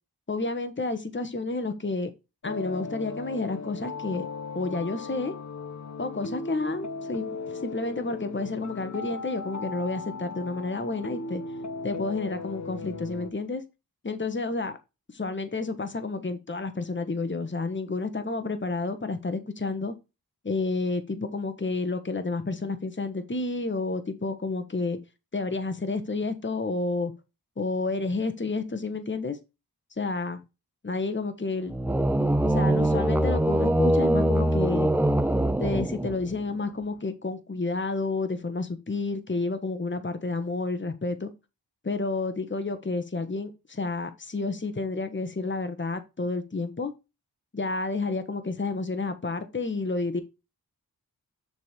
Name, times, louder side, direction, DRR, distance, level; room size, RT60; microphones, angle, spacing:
voice 1, 0.3-2.1 2.4-4.3 4.5-5.3 6.0-7.3 7.6-11.4 11.8-13.6 14.0-14.8 15.1-19.9 20.4-25.0 25.3-27.1 27.6-29.4 30.0-30.4 30.8-31.7 32.5-34.9 35.6-41.3 41.8-46.9 47.5-50.2, left 3 dB, 30° left, 1.4 m, -30 dB
sound 1, 2.4-13.3, left 3 dB, 50° left, 1.0 m, -37 dB
sound 2, 31.7-36.4, right 1 dB, 5° right, 0.7 m, -23 dB
6.9 x 4.1 x 5.1 m
wide cardioid pair, 60°, 37 cm